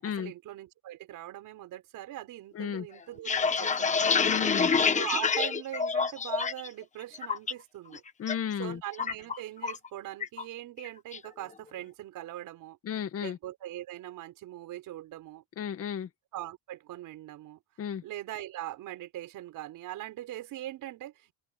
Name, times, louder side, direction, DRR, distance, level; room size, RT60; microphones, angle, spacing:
voice 1, 0.2-4.1 4.9-8.0 8.6-12.8 13.2-15.4 16.3-17.6 18.0-21.3, right 14 dB, 55° right, 5.8 m, -41 dB
voice 2, 2.5-2.9 4.2-4.7 8.2-8.8 12.8-13.4 15.6-16.1 17.8-18.0, left 8 dB, 35° left, 2.0 m, -33 dB
sound 1, 3.0-6.7 7.0-7.5 7.9-8.4 8.6-9.9 10.2-10.4 10.8-11.3, left 5 dB, 20° left, 1.2 m, -27 dB
cardioid pair, 170°, 38 cm